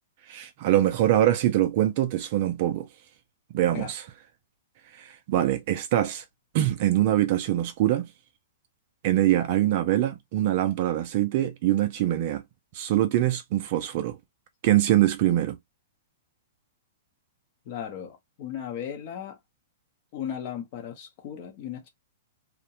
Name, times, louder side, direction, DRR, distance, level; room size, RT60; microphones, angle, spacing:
voice 1, 0.3-2.9 3.5-4.1 4.9-6.2 6.5-8.1 9.0-12.4 12.7-14.2 14.6-15.6, right 13 dB, 35° right, 0.3 m, -23 dB
voice 2, 17.7-19.4 20.1-21.9, left 9 dB, 30° left, 0.6 m, -36 dB
2.4 x 2.1 x 2.8 m
hypercardioid pair, 175°, 0 cm